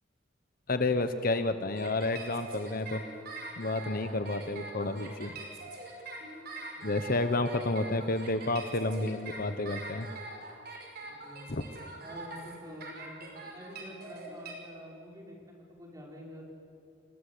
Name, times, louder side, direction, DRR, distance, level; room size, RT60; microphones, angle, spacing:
voice 1, 0.7-3.0 3.6-5.3 6.8-10.1 11.5-11.6, left 2 dB, 50° left, 10 dB, 1.1 m, -30 dB
sound 1, 1.8-14.5, right 3 dB, 55° right, 5.6 m, -43 dB
voice 2, 11.0-16.4, equal, 20° right, -2 dB, 6.0 m, -48 dB
29.5 x 21.5 x 8.6 m, 2.6 s
head